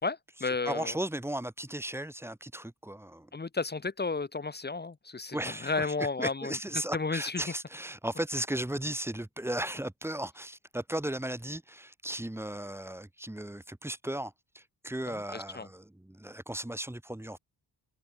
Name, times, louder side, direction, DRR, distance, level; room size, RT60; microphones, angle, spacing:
voice 1, 0.0-1.0 3.3-6.6 6.9-7.4 15.1-15.7, left 4 dB, 20° left, 3.8 m, -33 dB
voice 2, 0.7-3.3 5.3-17.4, right 1 dB, 5° right, 4.6 m, -36 dB
wide cardioid pair, 180°, 44 cm